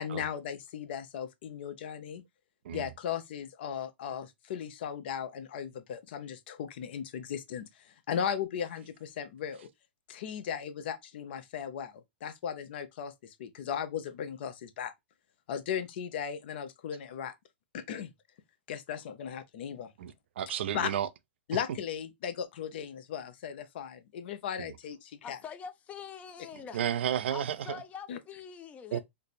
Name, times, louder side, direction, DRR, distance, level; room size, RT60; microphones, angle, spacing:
voice 1, 0.0-2.2 2.7-9.7 10.1-14.9 15.5-17.3 17.7-18.1 18.7-19.9 20.7-20.9 21.5-25.4 28.1-28.2, left 8 dB, 60° left, 0.7 m, -37 dB
voice 2, 20.0-21.1 26.7-27.8 28.9-29.0, right 10 dB, 75° right, 0.4 m, -32 dB
voice 3, 25.2-26.8 27.3-29.0, left 6 dB, 25° left, 0.5 m, -44 dB
3.2 x 2.0 x 4.1 m
hypercardioid pair, 130°, 6 cm